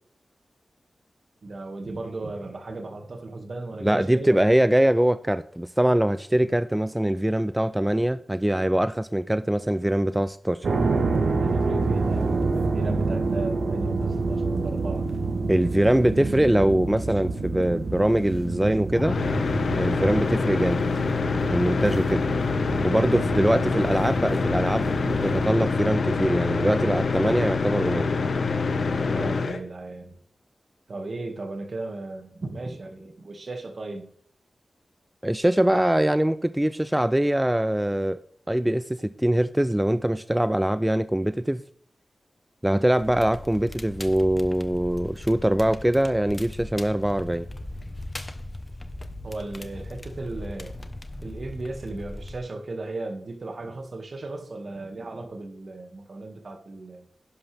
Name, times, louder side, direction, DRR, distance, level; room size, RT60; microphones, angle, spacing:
voice 1, 1.4-4.5 11.3-15.1 29.0-30.2 30.9-34.1 49.2-50.8 51.2-57.1, right 2 dB, 55° right, 6 dB, 2.0 m, -36 dB
voice 2, 3.8-10.7 15.5-19.2 19.8-20.8 21.5-22.2 22.8-28.1 35.2-38.2 38.5-41.6 42.6-47.5, right 1 dB, 10° right, 13 dB, 0.4 m, -23 dB
sound 1, 10.6-25.5, right 3 dB, 70° right, 1.3 m, -28 dB
sound 2, 18.9-29.6, left 4 dB, 75° left, 1.3 m, -25 dB
Crackle, 43.0-52.4, left 1 dB, 25° left, 1.0 m, -39 dB
11.5 x 11.0 x 3.5 m, 0.63 s
wide cardioid pair, 90°, 0 cm